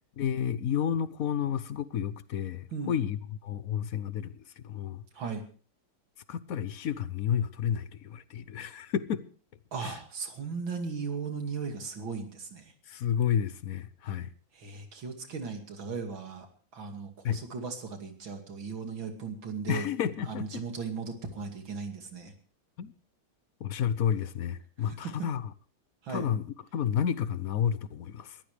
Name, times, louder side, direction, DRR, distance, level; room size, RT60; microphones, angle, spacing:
voice 1, 0.2-5.0 6.3-9.2 9.8-9.9 12.9-14.3 17.2-17.4 19.7-20.5 22.8-22.9 23.6-25.5 26.1-28.4, left 8 dB, 55° left, 1.1 m, -31 dB
voice 2, 5.1-5.4 9.7-12.7 14.5-16.5 16.7-19.9 20.3-22.3 24.8-25.1 26.0-26.3, right 5 dB, 85° right, 3.2 m, -37 dB
21.5 x 14.5 x 3.4 m
omnidirectional pair, 2.1 m